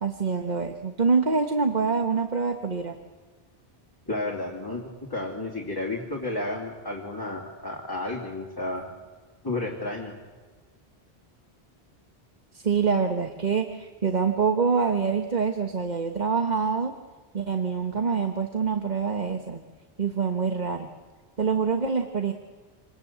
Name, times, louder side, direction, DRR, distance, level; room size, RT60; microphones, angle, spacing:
voice 1, 0.0-3.0 12.5-16.9 17.3-19.6 20.0-20.9 21.4-22.3, right 5 dB, 45° right, 6 dB, 1.3 m, -25 dB
voice 2, 4.1-8.9 9.4-10.1, left 2 dB, 20° left, -2 dB, 2.8 m, -32 dB
27.0 x 20.0 x 8.6 m, 1.4 s
omnidirectional pair, 1.1 m